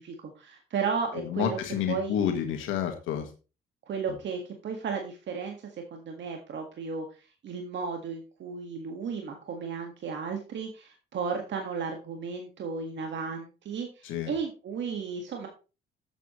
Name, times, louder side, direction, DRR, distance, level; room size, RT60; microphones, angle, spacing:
voice 1, 0.0-1.6 1.9-2.2 3.9-7.1 7.4-15.5, right 5 dB, 65° right, 3 dB, 1.8 m, -34 dB
voice 2, 1.1-3.3 14.0-14.3, left 9 dB, 90° left, 5 dB, 1.7 m, -29 dB
12.5 x 8.2 x 3.1 m, 0.32 s
cardioid pair, 90°, 20 cm